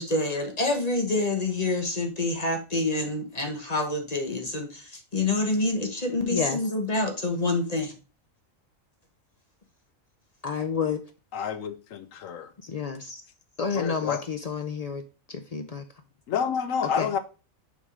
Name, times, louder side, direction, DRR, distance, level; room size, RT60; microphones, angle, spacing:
voice 1, 0.0-7.9, left 2 dB, 30° left, 1.1 m, -27 dB
voice 2, 6.3-6.6 10.4-11.0 12.6-13.2 13.6-15.0 15.3-15.8 17.0-17.1, left 5 dB, 90° left, 0.3 m, -30 dB
voice 3, 11.3-12.5 13.7-14.2 16.3-17.2, left 7 dB, 75° left, 1.2 m, -29 dB
7.1 x 3.6 x 4.8 m
omnidirectional pair, 1.4 m